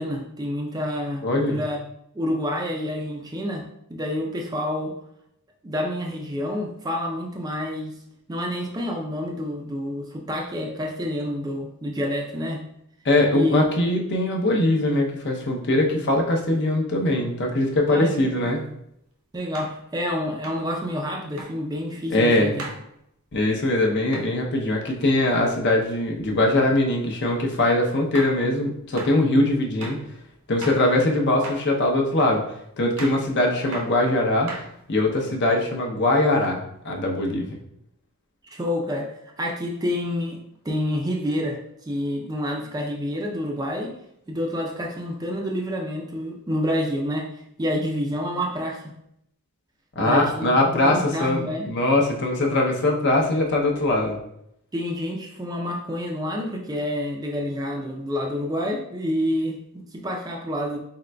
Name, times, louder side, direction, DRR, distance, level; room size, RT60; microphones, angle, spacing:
voice 1, 0.0-1.9 2.1-5.0 5.6-8.0 8.3-12.6 13.3-13.7 17.9-18.3 19.3-22.7 38.5-40.4 40.6-43.9 44.3-47.3 47.6-49.0 50.0-51.7 54.7-60.8, left 1 dB, 15° right, 0 dB, 0.4 m, -28 dB
voice 2, 1.2-1.6 13.0-18.6 22.1-22.5 23.3-30.0 30.5-32.4 32.8-34.5 34.9-37.6 50.0-54.2, left 1 dB, 50° left, 0 dB, 0.6 m, -21 dB
sound 1, 18.5-18.6 19.5-19.8 20.4-20.7 21.4-21.6 22.6-22.8 24.1-24.3 27.4-27.5 28.1-28.4 29.0-29.2 29.8-30.1 30.6-30.9 31.4-31.7 32.2-32.4 33.0-33.2 33.7-34.0 34.5-35.0, right 3 dB, 65° right, 0.7 m, -37 dB
4.1 x 3.7 x 2.2 m, 0.76 s
head